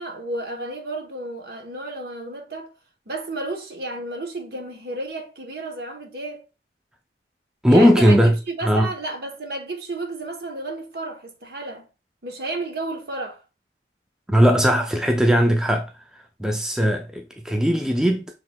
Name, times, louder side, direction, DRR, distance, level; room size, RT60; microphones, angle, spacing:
voice 1, 0.0-2.7 3.1-6.4 7.7-8.2 8.5-11.9 12.2-13.4, right 2 dB, 60° right, 1.0 m, -32 dB
voice 2, 7.6-8.4 8.6-8.9 14.3-15.9 16.4-18.3, equal, 5° right, 0.3 m, -18 dB
6.1 x 3.1 x 2.2 m
head